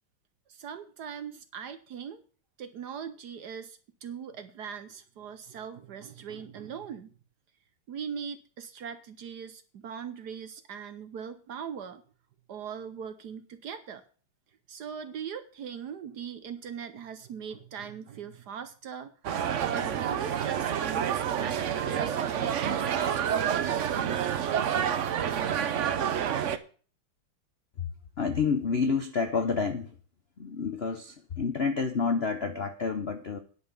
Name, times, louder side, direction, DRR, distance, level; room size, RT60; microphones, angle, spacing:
voice 1, 0.5-2.2 2.6-7.1 7.9-12.0 12.5-14.0 14.7-19.1 19.6-24.5, right 7 dB, 60° right, 11 dB, 1.2 m, -40 dB
sound 1, 19.2-26.6, right 9 dB, 90° right, 0.6 m, -28 dB
voice 2, 28.2-29.9 30.4-33.4, left 5 dB, 55° left, 7 dB, 0.6 m, -29 dB
10.0 x 5.8 x 8.4 m, 0.41 s
omnidirectional pair, 2.3 m